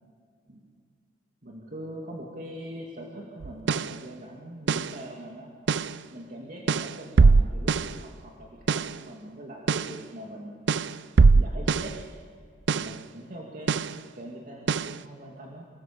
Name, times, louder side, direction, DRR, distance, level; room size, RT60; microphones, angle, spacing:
voice 1, 1.4-5.5 6.1-10.6 11.3-11.9 12.7-13.7 14.1-15.6, right 1 dB, 50° right, -2 dB, 2.5 m, -42 dB
sound 1, 3.4-4.0 4.7-5.0 5.7-6.0 6.7-8.0 8.7-9.0 9.7-10.0 10.7-12.0 12.7-13.0 13.7-14.0 14.7-15.0, right 4 dB, 80° right, 0.5 m, -22 dB
28.0 x 20.5 x 7.1 m, 2.1 s
head